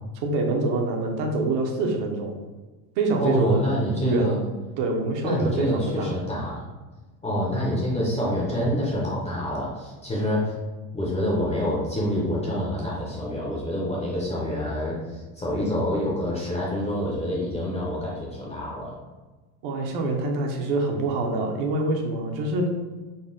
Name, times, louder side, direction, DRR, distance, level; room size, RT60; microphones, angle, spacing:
voice 1, 0.2-2.3 3.0-3.6 4.0-4.4 4.8-6.2 19.6-22.7, right 2 dB, 60° right, 2 dB, 0.8 m, -25 dB
voice 2, 3.2-4.4 5.2-6.6 7.2-10.6 10.9-18.9, equal, 15° left, -5 dB, 0.5 m, -26 dB
4.0 x 2.1 x 3.7 m, 1.2 s
cardioid pair, 145°, 49 cm